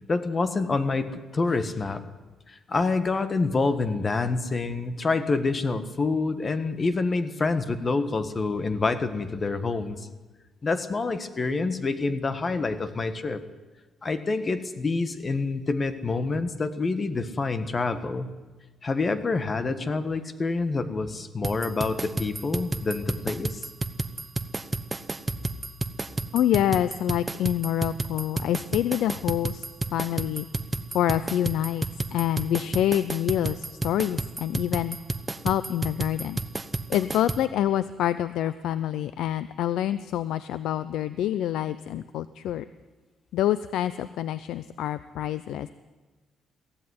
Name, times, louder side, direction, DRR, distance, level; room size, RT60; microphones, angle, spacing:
voice 1, 0.1-2.0 2.5-10.1 10.6-13.4 14.0-18.3 18.8-23.6, left 3 dB, 25° left, 11 dB, 1.6 m, -27 dB
sound 1, 21.4-37.4, right 3 dB, 15° right, 1.0 m, -31 dB
voice 2, 26.3-29.6 29.9-30.5 30.9-35.0 35.4-36.4 36.9-42.6 43.3-45.7, left 11 dB, 85° left, 14 dB, 0.7 m, -26 dB
23.0 x 16.0 x 9.6 m, 1.3 s
cardioid pair, 150°, 0 cm